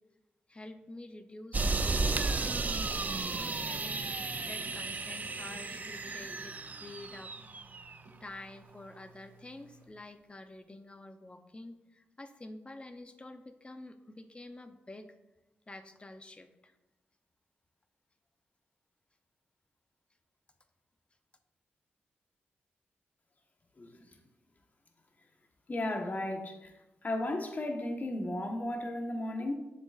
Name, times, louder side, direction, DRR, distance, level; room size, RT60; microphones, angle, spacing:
voice 1, 0.5-3.1 3.3-7.3 8.2-15.1 15.7-16.7, left 2 dB, 25° left, 8 dB, 0.7 m, -49 dB
sound 1, 1.5-8.0, right 3 dB, 40° right, 0.5 m, -34 dB
sound 2, 1.9-9.9, right 2 dB, 85° right, 1.5 m, -56 dB
voice 2, 23.8-24.1 25.7-26.7 27.0-29.5, left 1 dB, 40° left, 3 dB, 1.2 m, -34 dB
7.1 x 6.9 x 2.5 m, 1.0 s
cardioid pair, 60°, 4 cm